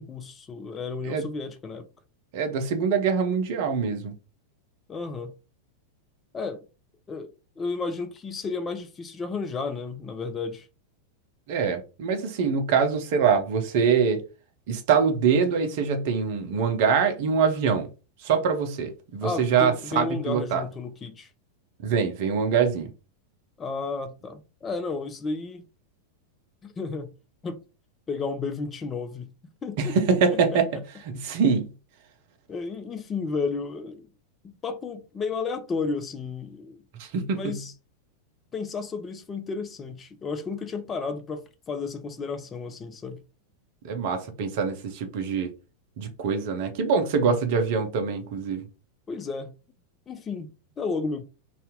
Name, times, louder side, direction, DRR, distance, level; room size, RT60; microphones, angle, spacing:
voice 1, 0.0-1.9 4.9-5.3 6.3-6.6 7.1-10.7 19.2-21.3 23.6-25.6 26.6-27.1 27.4-27.6 28.1-29.3 29.6-30.8 32.5-34.1 34.4-36.8 37.3-37.7 38.5-43.2 49.1-49.5 50.1-51.2, left 4 dB, 20° left, 0.4 m, -33 dB
voice 2, 2.3-4.1 11.5-14.2 14.7-17.9 18.2-20.6 21.8-22.9 29.8-30.7 31.1-31.7 37.0-37.6 43.8-45.5 46.0-48.7, right 6 dB, 50° right, 0.7 m, -24 dB
2.8 x 2.4 x 3.6 m
figure-of-eight pair, 90°, 0 cm